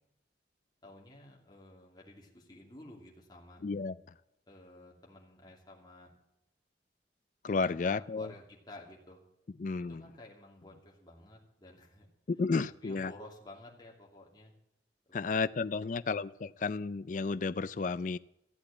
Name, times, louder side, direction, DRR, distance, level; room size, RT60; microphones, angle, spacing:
voice 1, 0.8-3.6 4.5-6.1 7.6-9.2 9.8-12.1 12.8-14.5 15.1-16.1 16.4-16.5, left 1 dB, 25° left, 2.7 m, -53 dB
voice 2, 3.6-3.9 7.4-8.3 9.6-10.0 12.3-13.1 15.1-18.2, left 4 dB, 45° left, 0.4 m, -32 dB
14.5 x 8.3 x 8.5 m
head